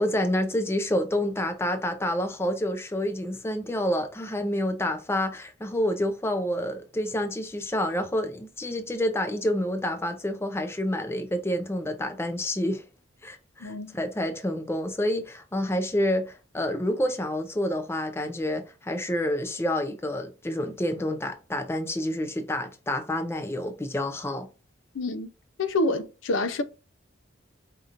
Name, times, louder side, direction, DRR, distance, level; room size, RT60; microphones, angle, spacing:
voice 1, 0.0-12.8 13.2-24.5, left 1 dB, 10° left, 0.4 m, -28 dB
voice 2, 13.6-13.9 24.9-25.3 25.6-26.6, left 2 dB, 70° left, 0.5 m, -27 dB
4.9 x 2.9 x 2.5 m
head